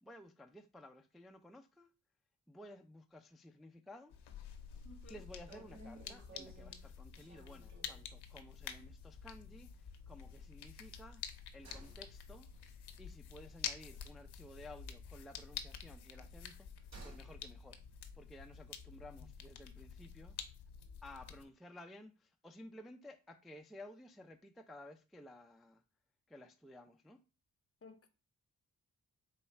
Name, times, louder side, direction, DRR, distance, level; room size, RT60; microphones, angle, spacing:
voice 1, 0.0-1.9 2.5-4.1 5.1-11.2 11.5-12.5 13.0-17.8 18.1-20.4 21.0-25.8 26.3-27.2, left 1 dB, ahead, 0.4 m, -55 dB
sound 1, 4.1-21.5, left 7 dB, 85° left, 0.6 m, -49 dB
voice 2, 4.8-5.2 27.8-28.1, left 2 dB, 35° left, 0.7 m, -56 dB
sound 2, 4.8-4.9 5.1-5.2 5.5-8.2 8.6-8.7 9.0-9.1 10.7-14.7 14.9-17.4 17.7-17.8, right 2 dB, 45° right, 2.5 m, -57 dB
4.0 x 2.3 x 4.3 m
cardioid pair, 45°, 39 cm